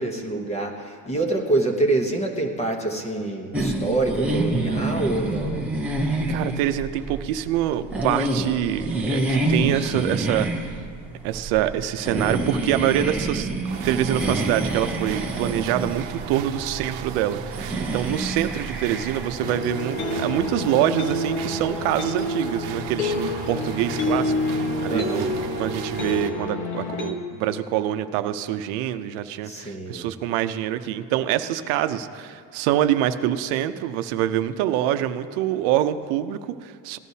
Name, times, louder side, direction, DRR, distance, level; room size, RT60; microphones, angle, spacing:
voice 1, 0.0-5.7 24.9-25.3 29.4-30.1, right 2 dB, 15° left, 2 dB, 0.9 m, -26 dB
sound 1, 3.5-19.3, right 2 dB, 5° right, 0.5 m, -27 dB
voice 2, 6.3-10.7 11.2-13.5 13.8-37.0, right 11 dB, 90° right, 10 dB, 0.7 m, -25 dB
sound 2, 13.7-26.3, right 8 dB, 60° right, 0.9 m, -37 dB
sound 3, 19.4-27.1, left 2 dB, 50° left, 1.2 m, -28 dB
18.0 x 12.5 x 2.8 m, 2.2 s
cardioid pair, 175°, 49 cm